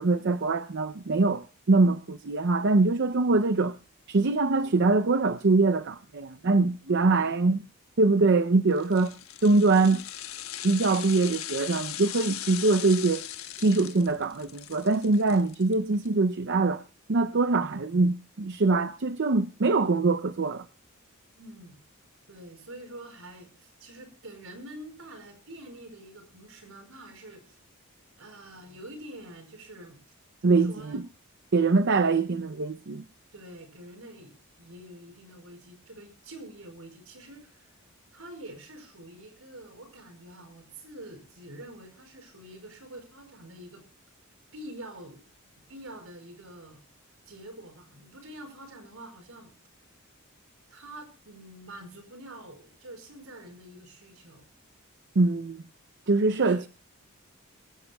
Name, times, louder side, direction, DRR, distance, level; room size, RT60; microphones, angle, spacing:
voice 1, 0.0-3.8 4.1-7.6 8.0-9.1 9.4-10.0 10.6-13.2 13.6-16.8 17.1-20.6 30.4-31.0 31.5-33.0 55.2-55.6 56.1-56.7, right 3 dB, 55° right, 0.6 m, -23 dB
voice 2, 6.8-7.3 21.4-21.8 22.3-27.6 28.2-30.0 30.4-31.0 32.1-32.3 33.3-37.7 38.1-43.8 44.5-45.2 45.7-46.8 47.3-49.5 50.7-54.4 56.2-56.6, right 1 dB, 75° right, 5.0 m, -46 dB
sound 1, 8.8-16.1 16.4-16.5, left 12 dB, 80° left, 1.2 m, -39 dB
22.0 x 16.5 x 2.3 m
head